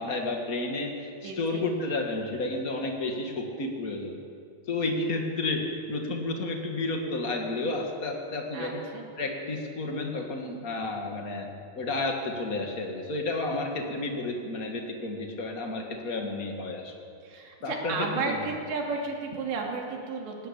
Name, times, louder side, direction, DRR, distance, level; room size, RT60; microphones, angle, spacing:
voice 1, 0.0-4.2 4.7-8.8 9.2-16.9 17.6-18.4, left 2 dB, 30° left, 2 dB, 1.8 m, -31 dB
voice 2, 1.2-1.7 8.5-9.0 17.2-20.5, right 4 dB, 90° right, 1 dB, 5.0 m, -33 dB
19.0 x 18.0 x 8.6 m, 2.4 s
omnidirectional pair, 4.8 m